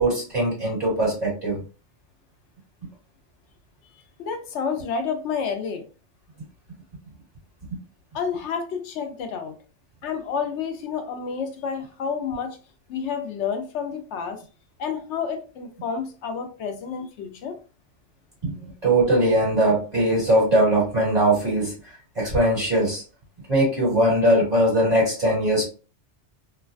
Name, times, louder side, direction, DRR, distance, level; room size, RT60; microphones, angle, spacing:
voice 1, 0.0-1.6 18.4-18.5 18.8-21.7 22.1-23.0 23.5-25.6, right 1 dB, 35° right, -6 dB, 1.6 m, -20 dB
voice 2, 4.2-5.8 8.1-9.5 10.0-12.6 12.9-14.4 14.8-17.6, left 6 dB, 80° left, 6 dB, 0.9 m, -29 dB
3.1 x 2.2 x 2.4 m, 0.36 s
omnidirectional pair, 1.2 m